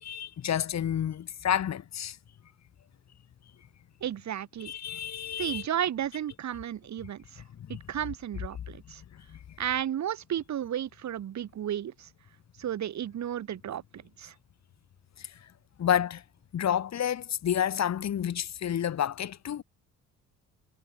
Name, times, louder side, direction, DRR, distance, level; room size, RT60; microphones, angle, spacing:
voice 1, 0.0-2.2 4.6-5.6 15.8-16.2 16.5-19.6, left 9 dB, 60° left, 4.6 m, -29 dB
voice 2, 4.0-4.7 5.4-7.4 7.7-9.0 9.6-12.1 12.6-14.3, right 10 dB, 65° right, 4.6 m, -33 dB
cardioid pair, 90°, 30 cm